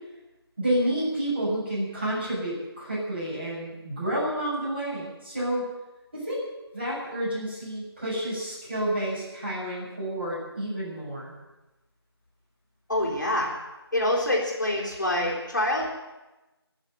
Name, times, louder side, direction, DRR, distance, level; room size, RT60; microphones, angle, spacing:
voice 1, 0.6-5.6 6.1-6.4 6.7-11.3, right 1 dB, 25° right, -8 dB, 6.9 m, -30 dB
voice 2, 12.9-13.5 13.9-16.0, left 1 dB, 45° left, -3 dB, 3.9 m, -26 dB
21.0 x 7.4 x 9.2 m, 1.1 s
figure-of-eight pair, 180°, 14 cm